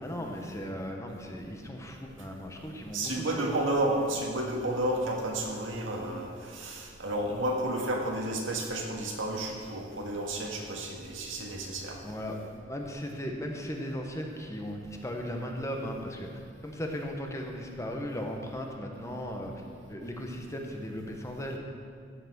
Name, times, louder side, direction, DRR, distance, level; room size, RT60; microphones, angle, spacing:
voice 1, 0.0-3.7 12.0-16.3 16.6-19.5 19.9-21.6, equal, 15° left, 2 dB, 1.0 m, -37 dB
voice 2, 2.9-12.0, right 1 dB, 85° right, 0 dB, 1.8 m, -31 dB
14.0 x 5.9 x 6.1 m, 2.2 s
head